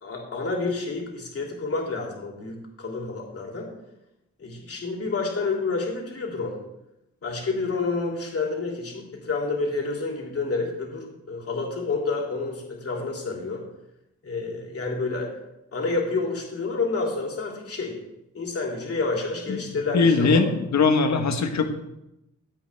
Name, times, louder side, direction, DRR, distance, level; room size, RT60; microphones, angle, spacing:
voice 1, 0.0-3.7 4.4-6.6 7.2-13.6 14.2-15.3 15.7-18.0 18.3-20.4, left 3 dB, 50° left, -1 dB, 3.0 m, -29 dB
voice 2, 19.9-21.7, left 4 dB, 65° left, 5 dB, 1.5 m, -21 dB
17.0 x 8.3 x 3.5 m, 0.88 s
wide cardioid pair, 155°, 30 cm